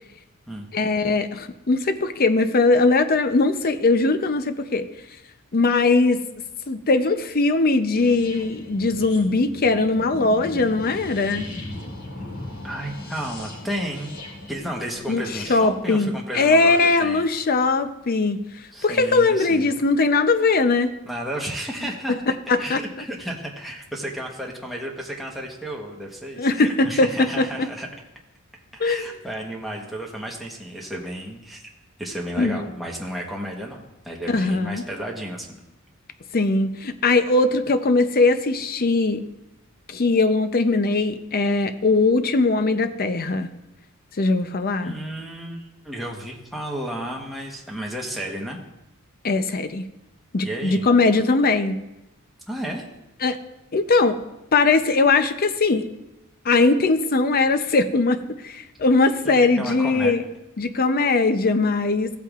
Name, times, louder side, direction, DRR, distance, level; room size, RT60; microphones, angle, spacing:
voice 1, 0.7-4.9 5.5-6.2 6.7-11.5 15.1-18.4 18.8-20.9 22.5-22.8 26.4-27.7 28.8-29.1 32.4-32.6 34.3-34.8 36.3-39.2 39.9-43.5 44.2-44.9 49.2-49.8 50.3-51.8 53.2-53.4 53.7-54.2 54.5-55.9 56.5-60.2 60.6-62.1, left 3 dB, 45° left, 9 dB, 0.6 m, -20 dB
sound 1, 7.9-15.8, left 2 dB, 80° left, 2.2 m, -38 dB
voice 2, 12.6-14.2 14.5-17.2 18.7-19.7 21.0-22.2 22.6-27.9 28.7-31.6 32.0-35.6 44.8-48.6 50.4-50.9 52.5-52.9 59.2-60.1, right 1 dB, ahead, -2 dB, 1.1 m, -32 dB
15.0 x 8.4 x 2.4 m, 0.91 s
head